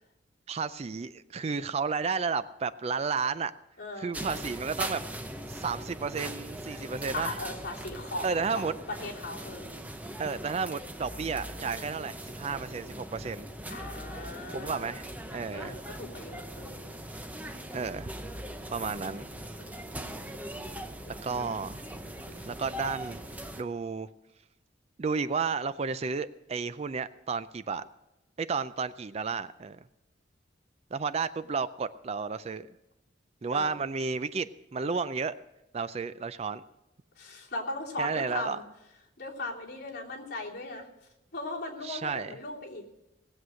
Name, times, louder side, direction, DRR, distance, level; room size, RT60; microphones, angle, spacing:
voice 1, 0.5-3.5 4.0-5.0 5.5-7.4 8.2-8.7 10.2-13.5 14.5-15.1 15.3-15.8 17.7-18.1 18.7-19.3 21.2-21.8 22.5-23.2 23.6-24.1 25.0-27.8 28.4-29.8 30.9-32.7 33.4-35.3 35.7-36.6 38.0-38.6 41.8-42.3, right 5 dB, 35° right, 14 dB, 0.4 m, -32 dB
voice 2, 3.8-4.1 7.1-9.7 13.7-15.0 15.5-16.8 19.6-19.8 21.0-21.2 22.2-22.5 33.5-33.7 37.1-38.6 39.2-40.9 41.3-42.9, left 2 dB, 50° left, -4 dB, 3.1 m, -38 dB
sound 1, 4.1-23.6, right 1 dB, 10° right, 0.7 m, -40 dB
18.5 x 7.9 x 6.3 m, 0.94 s
head